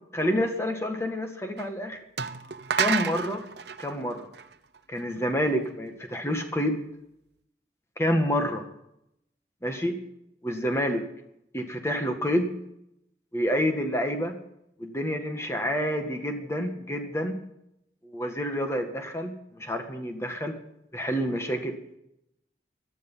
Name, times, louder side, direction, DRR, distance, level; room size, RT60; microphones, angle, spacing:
voice 1, 0.1-2.0 2.8-3.4 3.8-4.3 4.9-6.9 8.0-8.6 9.6-10.0 10.4-11.0 11.5-12.5 13.3-14.3 14.8-17.4 18.0-20.5 20.9-21.8, equal, 15° left, 5 dB, 1.9 m, -28 dB
sound 1, 1.6-1.7 2.2-5.0, right 6 dB, 75° right, 0.9 m, -30 dB
17.5 x 12.5 x 5.8 m, 0.79 s
head